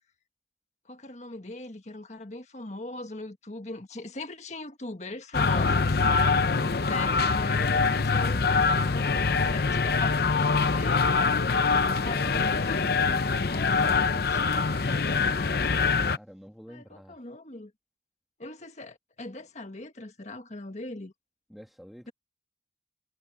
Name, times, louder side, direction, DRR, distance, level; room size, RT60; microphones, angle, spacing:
voice 1, 0.9-5.9 6.9-11.5 11.9-15.7 16.7-17.7 18.4-21.1, left 2 dB, 40° left, 1.6 m, -40 dB
sound 1, 5.3-16.2, left 4 dB, 60° left, 0.7 m, -24 dB
voice 2, 6.5-6.8 16.1-17.2 21.5-22.1, equal, ahead, 2.0 m, -49 dB
head